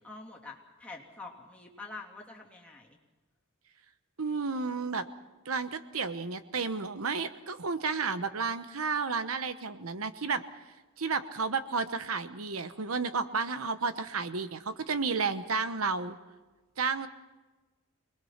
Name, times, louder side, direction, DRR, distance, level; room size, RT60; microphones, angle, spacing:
voice 1, 0.0-3.0, left 3 dB, 5° left, -2 dB, 3.2 m, -46 dB
voice 2, 4.2-5.1 5.4-10.4 11.0-16.2 16.8-17.1, right 4 dB, 80° right, 11 dB, 1.1 m, -32 dB
26.5 x 20.5 x 5.8 m, 1.2 s
head